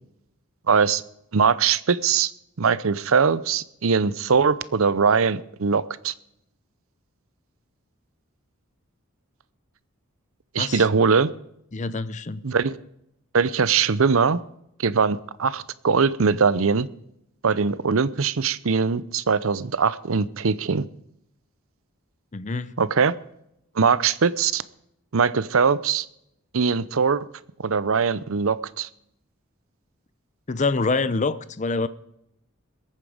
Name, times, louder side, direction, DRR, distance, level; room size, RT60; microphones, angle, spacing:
voice 1, 0.7-1.0 1.3-2.3 2.6-6.1 10.5-11.3 12.4-12.8 13.3-14.4 14.8-16.9 17.4-20.8 22.8-23.1 23.7-24.6 25.1-26.1 26.5-27.2 27.6-28.9, right 5 dB, 75° right, 0.7 m, -21 dB
voice 2, 11.7-12.4 22.3-22.7 30.5-31.9, left 3 dB, 35° left, 0.6 m, -26 dB
21.5 x 9.0 x 5.0 m
head